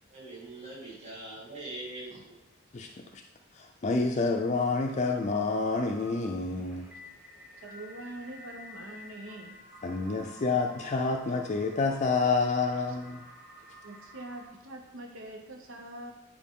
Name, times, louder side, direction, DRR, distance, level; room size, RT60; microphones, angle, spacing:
voice 1, 0.1-2.4, right 2 dB, 35° right, -7 dB, 2.5 m, -42 dB
voice 2, 2.7-3.2 3.5-6.8 9.8-13.2, left 3 dB, 35° left, 3 dB, 0.4 m, -28 dB
sound 1, 4.3-14.5, equal, 10° right, 2.6 m, -51 dB
voice 3, 7.6-9.6 13.8-16.1, right 1 dB, 65° right, 2 dB, 0.9 m, -43 dB
9.7 x 4.5 x 3.7 m, 0.97 s
head